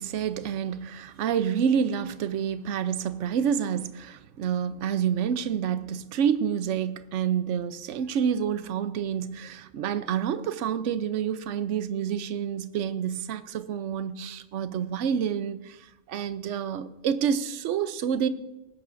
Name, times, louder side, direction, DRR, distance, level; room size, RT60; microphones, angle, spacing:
voice 1, 0.0-18.3, right 8 dB, 70° right, 1.0 m, -28 dB
19.0 x 16.5 x 2.6 m
omnidirectional pair, 1.3 m